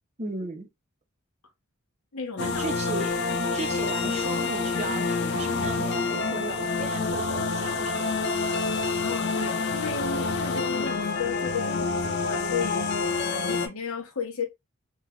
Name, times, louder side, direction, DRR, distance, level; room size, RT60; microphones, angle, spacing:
voice 1, 0.2-0.7 2.4-3.2 3.5-8.1, right 3 dB, 30° right, 0.5 m, -36 dB
voice 2, 2.1-2.7 8.8-14.5, left 5 dB, 80° left, 0.8 m, -34 dB
sound 1, 2.4-13.7, left 4 dB, 50° left, 0.4 m, -27 dB
3.2 x 2.2 x 2.3 m
head